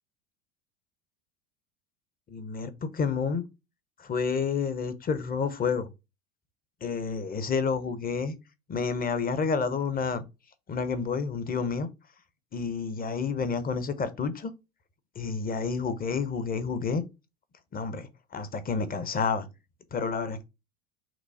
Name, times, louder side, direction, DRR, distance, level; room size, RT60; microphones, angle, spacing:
voice 1, 2.3-3.4 4.0-5.9 6.8-8.3 8.7-10.3 10.7-11.9 12.5-14.5 15.2-17.0 17.7-19.5 19.9-20.4, left 5 dB, 20° left, 0.7 m, -29 dB
5.9 x 2.0 x 4.1 m
hypercardioid pair, 95°, 41 cm